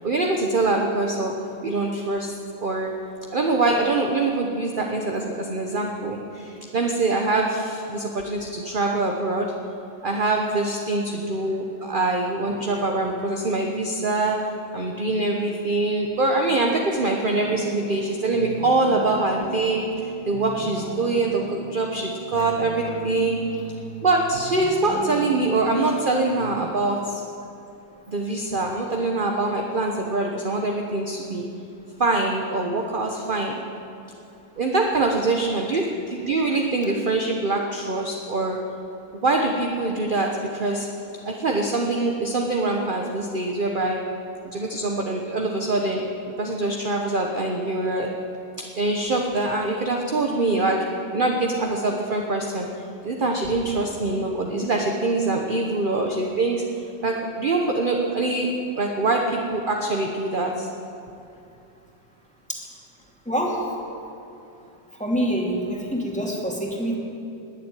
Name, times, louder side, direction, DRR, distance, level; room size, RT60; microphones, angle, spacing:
voice 1, 0.0-2.3 2.6-2.9 3.3-9.5 10.0-14.4 14.7-19.8 20.3-23.4 24.0-27.2 28.1-31.4 32.0-33.6 34.6-38.6 39.2-40.9 41.3-44.0 44.4-46.0 46.4-48.1 48.6-50.8 51.1-52.7 53.0-56.6 57.0-60.7, right 2 dB, 35° right, 1 dB, 0.9 m, -24 dB
sound 1, 17.3-26.7, right 4 dB, 80° right, 1.9 m, -36 dB
voice 2, 63.3-63.6 65.0-66.9, equal, 5° left, -2 dB, 2.5 m, -25 dB
20.0 x 7.7 x 9.2 m, 2.8 s
omnidirectional pair, 2.1 m